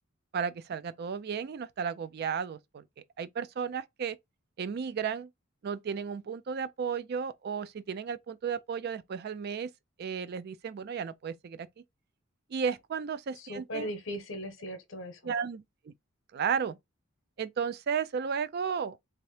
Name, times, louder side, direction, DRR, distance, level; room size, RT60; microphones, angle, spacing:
voice 1, 0.3-2.8 3.2-4.2 4.6-5.3 5.6-9.7 10.0-11.7 12.5-13.9 15.2-15.9 16.3-16.8 17.4-19.0, right 6 dB, 50° right, 0.3 m, -34 dB
voice 2, 13.3-15.3, equal, 65° left, 1.0 m, -38 dB
3.4 x 2.8 x 3.2 m
head